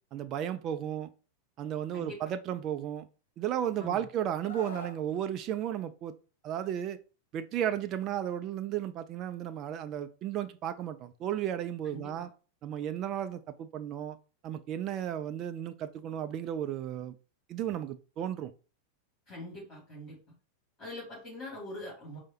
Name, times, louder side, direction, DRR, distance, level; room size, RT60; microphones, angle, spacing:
voice 1, 0.1-1.1 1.6-3.1 3.4-6.1 6.4-7.0 7.3-12.3 12.6-14.2 14.4-17.1 17.5-18.5, right 10 dB, 35° right, 0.3 m, -34 dB
voice 2, 1.9-2.3 3.8-4.0 11.8-12.3 19.3-20.2 20.8-22.2, left 1 dB, 20° left, 2.4 m, -43 dB
Screaming, 4.4-5.0 6.5-6.7, left 2 dB, 65° left, 0.7 m, -43 dB
4.6 x 2.1 x 4.4 m
figure-of-eight pair, 90°, 0 cm